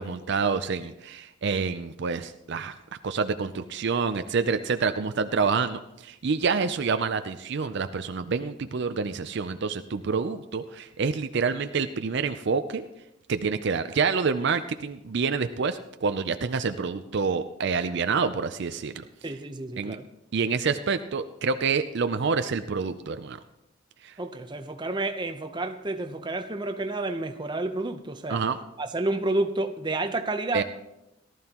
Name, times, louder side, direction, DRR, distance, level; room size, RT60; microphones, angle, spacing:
voice 1, 0.0-2.7 3.0-12.8 13.3-19.0 19.8-20.0 20.3-23.4 24.0-24.1 28.3-28.6 30.5-30.6, right 5 dB, 55° right, 0.5 m, -27 dB
voice 2, 19.2-20.0 24.2-28.4 28.8-30.6, right 2 dB, 20° right, 0.7 m, -30 dB
18.0 x 12.5 x 3.0 m
head